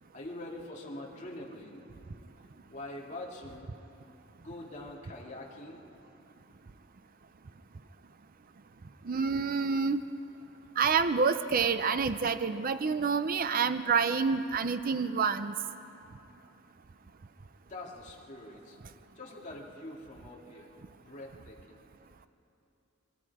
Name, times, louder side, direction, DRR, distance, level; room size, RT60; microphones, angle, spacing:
voice 1, 0.1-1.8 2.7-3.7 4.4-5.8 17.7-18.8 19.2-20.7 21.0-21.8, left 1 dB, 35° left, -2 dB, 2.6 m, -44 dB
voice 2, 9.0-10.0 10.8-15.5, right 5 dB, 45° right, 11 dB, 0.5 m, -28 dB
24.5 x 22.5 x 4.9 m, 2.9 s
head